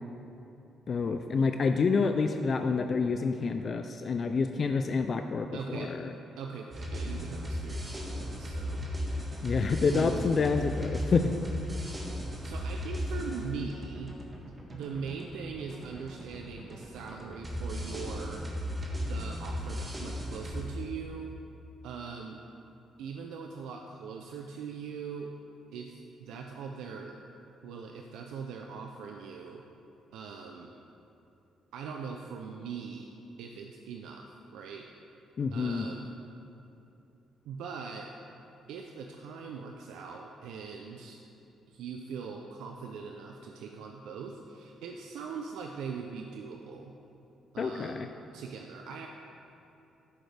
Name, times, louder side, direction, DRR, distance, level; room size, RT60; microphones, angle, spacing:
voice 1, 0.9-6.1 9.4-11.3 35.4-35.9 47.6-48.1, left 4 dB, 45° left, 7 dB, 0.4 m, -28 dB
voice 2, 5.5-5.9 6.4-8.9 9.9-10.4 12.4-14.1 14.7-18.5 19.0-21.3 21.8-22.4 23.0-25.3 25.7-27.2 27.6-29.6 30.1-30.7 31.7-33.1 33.4-34.3 34.5-34.9 35.5-36.1 37.5-38.1 38.7-41.2 41.7-46.9 47.5-49.1, right 5 dB, 85° right, 2 dB, 0.5 m, -41 dB
sound 1, 6.7-20.6, equal, 25° right, 1.4 m, -36 dB
12.5 x 6.4 x 3.4 m, 2.9 s
cardioid pair, 90°, 0 cm